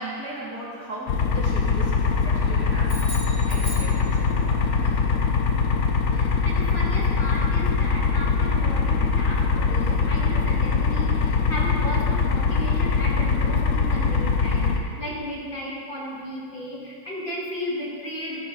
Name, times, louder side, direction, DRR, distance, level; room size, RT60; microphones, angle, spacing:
voice 1, 0.0-3.2 3.5-5.0, right 2 dB, 50° right, -6 dB, 2.9 m, -37 dB
sound 1, 1.1-14.8, left 5 dB, 60° left, 0.9 m, -22 dB
sound 2, 2.8-4.6, right 1 dB, 20° right, 3.1 m, -38 dB
voice 2, 6.1-18.4, equal, 25° left, -5 dB, 2.0 m, -34 dB
13.5 x 9.2 x 3.9 m, 2.3 s
omnidirectional pair, 2.4 m